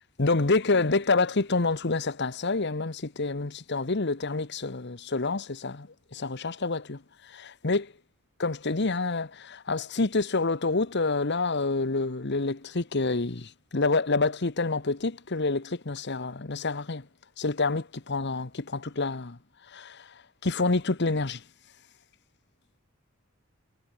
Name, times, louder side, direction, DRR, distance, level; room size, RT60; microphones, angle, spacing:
voice 1, 0.2-7.0 7.3-7.9 8.4-17.0 17.4-19.4 19.7-20.0 20.4-21.4, left 3 dB, 55° left, 1.2 m, -27 dB
head